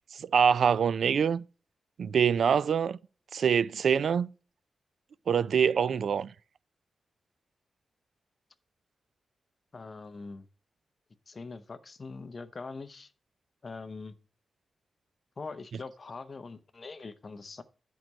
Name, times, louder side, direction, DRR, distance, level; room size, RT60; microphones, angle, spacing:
voice 1, 0.2-1.4 2.0-3.0 3.3-4.3 5.3-6.3, right 7 dB, 70° right, 0.3 m, -25 dB
voice 2, 9.7-10.5 11.3-13.1 13.6-14.1 15.4-17.6, left 4 dB, 35° left, 0.7 m, -42 dB
10.5 x 4.7 x 5.2 m
wide cardioid pair, 140°, 0 cm